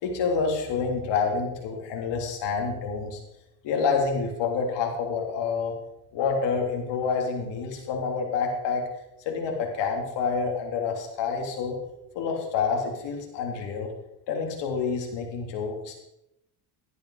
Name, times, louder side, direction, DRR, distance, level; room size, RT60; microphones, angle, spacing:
voice 1, 0.0-3.2 3.6-5.7 6.1-8.8 9.3-11.8 12.2-13.9 14.3-15.9, left 5 dB, 70° left, 1 dB, 3.5 m, -28 dB
13.0 x 10.5 x 4.9 m, 0.85 s
cardioid pair, 110°, 44 cm